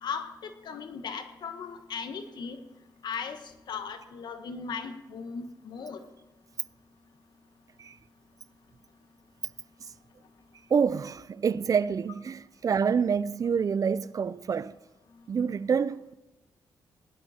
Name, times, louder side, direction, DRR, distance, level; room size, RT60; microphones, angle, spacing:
voice 1, 0.0-2.6 3.0-6.0 13.8-13.9, left 6 dB, 70° left, 1.4 m, -37 dB
voice 2, 10.7-14.7 15.3-16.1, right 6 dB, 50° right, 0.5 m, -27 dB
17.5 x 11.5 x 4.4 m
cardioid pair, 75°, 8 cm